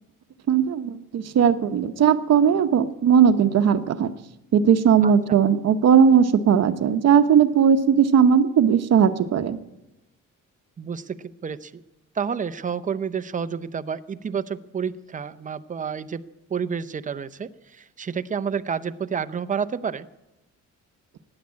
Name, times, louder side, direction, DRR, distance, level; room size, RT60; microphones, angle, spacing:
voice 1, 0.5-4.1 4.5-9.6, right 7 dB, 55° right, 10 dB, 0.9 m, -18 dB
voice 2, 5.0-5.4 10.8-11.7 12.1-16.2 16.5-20.1, right 6 dB, 25° right, 12 dB, 0.6 m, -30 dB
16.0 x 9.8 x 8.4 m, 0.94 s
cardioid pair, 135°, 31 cm